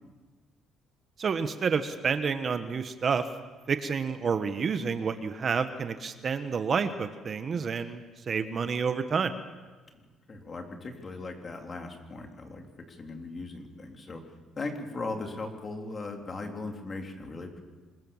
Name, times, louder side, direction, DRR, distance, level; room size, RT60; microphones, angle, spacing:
voice 1, 1.2-3.2 3.7-8.0 8.3-9.3, right 6 dB, 40° right, 9 dB, 1.3 m, -29 dB
voice 2, 10.3-14.2 14.6-17.6, left 3 dB, 30° left, 3 dB, 3.9 m, -38 dB
26.0 x 22.0 x 7.4 m, 1.3 s
cardioid pair, 115°, 0 cm